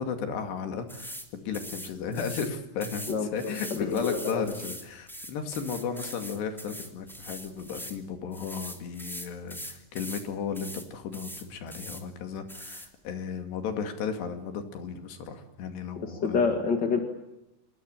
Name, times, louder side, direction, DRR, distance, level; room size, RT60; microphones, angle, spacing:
voice 1, 0.0-16.5, left 6 dB, 80° left, 6 dB, 4.5 m, -34 dB
sound 1, 0.9-1.3 1.5-2.5 2.8-8.0 8.3-10.3 10.5-10.9 11.1-12.0 12.5-12.9, equal, ahead, 2.1 m, -41 dB
voice 2, 3.1-3.5 3.8-4.5 16.0-17.0, left 5 dB, 35° left, 4 dB, 1.8 m, -27 dB
27.5 x 20.0 x 8.9 m, 0.93 s
omnidirectional pair, 4.9 m